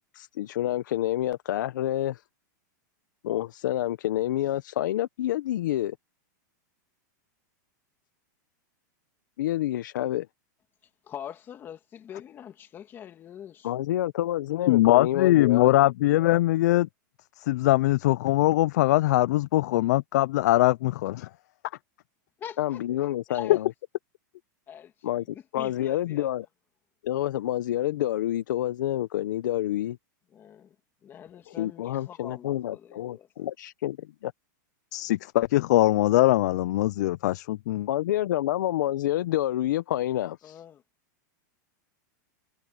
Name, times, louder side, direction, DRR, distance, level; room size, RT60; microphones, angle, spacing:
voice 1, 0.1-2.2 3.2-6.0 9.4-10.3 13.6-15.7 22.6-23.7 25.0-26.5 27.0-30.0 31.5-34.3 37.9-40.6, left 13 dB, 75° left, 0.8 m, -28 dB
voice 2, 11.0-13.7 22.4-22.8 23.3-23.6 24.7-26.3 30.3-30.8 31.0-33.5 40.4-40.8, left 9 dB, 20° left, 2.1 m, -44 dB
voice 3, 14.7-16.9 17.4-21.3 34.9-37.9, left 16 dB, 60° left, 0.4 m, -22 dB
supercardioid pair, 160°, 10 cm